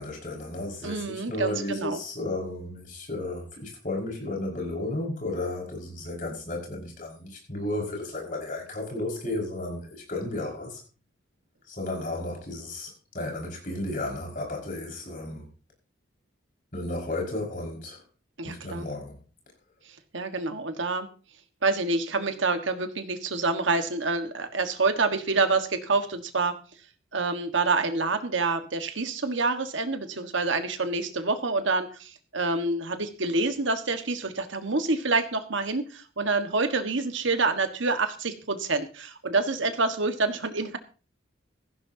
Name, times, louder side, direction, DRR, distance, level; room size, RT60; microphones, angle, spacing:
voice 1, 0.0-10.8 11.7-15.5 16.7-18.0 18.4-19.2, left 2 dB, 45° left, 5.4 m, -33 dB
voice 2, 0.8-2.0 18.4-18.9 20.1-21.1 21.6-26.6 27.1-40.8, right 3 dB, 80° right, 1.5 m, -27 dB
16.5 x 15.0 x 2.8 m
head